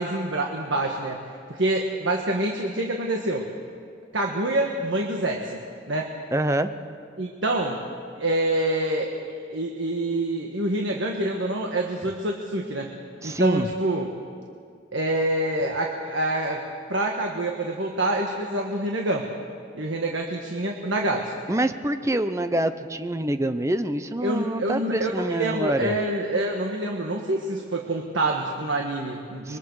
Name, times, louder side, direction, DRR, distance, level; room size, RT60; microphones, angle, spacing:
voice 1, 0.0-3.4 4.1-6.1 7.2-7.8 8.2-9.1 9.5-12.9 13.2-14.1 14.9-16.6 16.9-19.3 19.7-21.3 24.2-29.6, right 1 dB, 80° right, 1 dB, 1.5 m, -26 dB
voice 2, 6.3-6.7 13.2-13.7 21.5-26.0 29.5-29.6, right 1 dB, 15° right, 10 dB, 0.6 m, -26 dB
25.0 x 22.5 x 4.8 m, 2.2 s
head